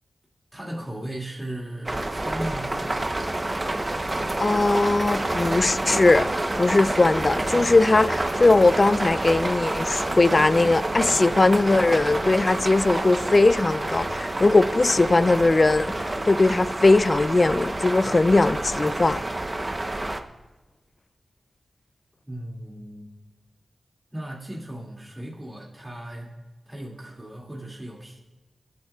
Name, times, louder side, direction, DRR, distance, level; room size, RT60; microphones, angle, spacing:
voice 1, 0.5-2.8 22.3-23.1 24.1-26.3 26.7-28.2, right 1 dB, 10° right, 2.5 m, -36 dB
sound 1, 1.9-20.2, right 2 dB, 30° right, 0.9 m, -28 dB
voice 2, 4.4-6.3 6.5-19.2, left 2 dB, 40° left, 0.5 m, -20 dB
24.0 x 10.5 x 2.4 m
cardioid pair, 60°, 0 cm